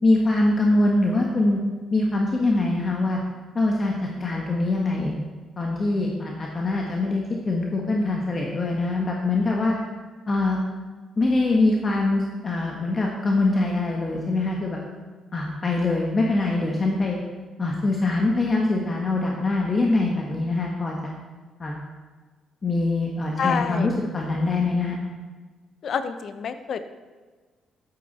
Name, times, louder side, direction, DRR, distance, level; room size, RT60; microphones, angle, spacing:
voice 1, 0.0-1.6 1.9-3.2 3.5-3.9 4.2-5.2 5.6-9.8 10.3-10.6 11.2-14.8 15.3-17.2 17.6-21.1 21.6-21.8 22.6-25.0, left 2 dB, 35° left, -1 dB, 1.4 m, -23 dB
voice 2, 23.4-23.9 25.8-26.9, left 6 dB, 60° left, 11 dB, 0.8 m, -27 dB
12.0 x 8.7 x 4.2 m, 1.4 s
cardioid pair, 90°, 0 cm